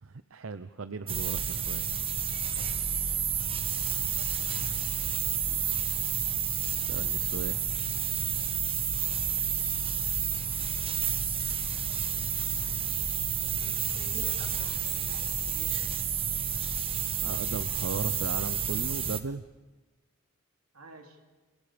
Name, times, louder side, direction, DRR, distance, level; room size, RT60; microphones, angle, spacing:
voice 1, 0.0-1.8 6.8-7.6 17.2-19.4, right 4 dB, 60° right, 12 dB, 0.7 m, -37 dB
sound 1, 1.1-19.2, right 7 dB, 25° right, 1.2 m, -30 dB
voice 2, 13.4-15.7 20.7-21.2, right 1 dB, 80° right, 3 dB, 3.3 m, -51 dB
29.5 x 28.5 x 5.1 m, 1.3 s
head